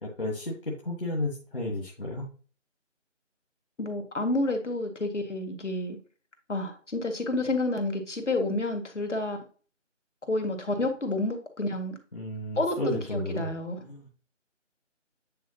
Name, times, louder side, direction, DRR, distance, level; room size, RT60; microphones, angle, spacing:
voice 1, 0.0-2.2 12.1-13.5 13.8-14.1, left 1 dB, 45° left, -2 dB, 1.4 m, -32 dB
voice 2, 3.8-6.0 6.5-9.4 10.2-12.0 12.6-13.8, left 2 dB, 70° left, 4 dB, 2.0 m, -29 dB
9.3 x 4.6 x 2.8 m, 0.38 s
figure-of-eight pair, 175°, 38 cm